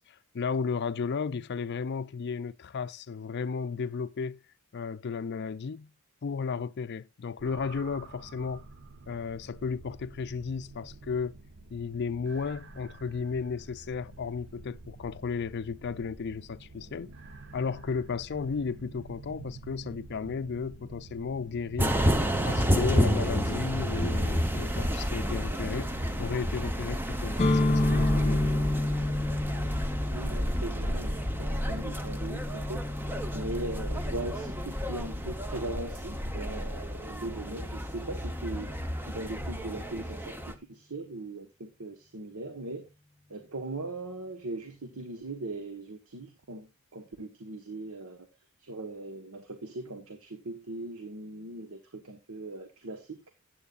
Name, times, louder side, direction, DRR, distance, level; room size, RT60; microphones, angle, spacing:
voice 1, 0.0-4.4 4.7-5.9 6.2-8.7 9.1-11.3 11.7-17.1 17.5-22.0 22.5-25.9 26.2-28.5, left 5 dB, 50° left, 0.4 m, -34 dB
sound 1, 7.4-26.2, right 3 dB, 55° right, 1.0 m, -48 dB
sound 2, 21.8-40.5, equal, 10° right, 0.8 m, -30 dB
sound 3, 27.4-35.2, left 2 dB, 30° left, 1.7 m, -31 dB
voice 2, 30.1-38.7 39.1-42.9 43.3-48.3 48.6-53.2, right 2 dB, 85° right, 1.3 m, -39 dB
14.0 x 9.2 x 2.4 m
head